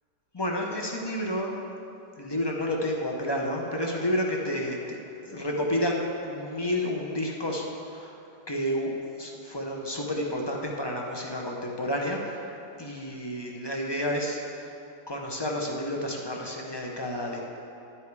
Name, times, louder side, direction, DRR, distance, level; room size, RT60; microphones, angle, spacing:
voice 1, 0.3-1.5 2.2-5.0 5.2-6.0 6.2-8.2 8.5-8.9 9.2-12.5 12.8-14.4 15.1-17.4, left 1 dB, 30° left, -1 dB, 0.4 m, -30 dB
10.5 x 9.0 x 4.7 m, 2.9 s
omnidirectional pair, 1.9 m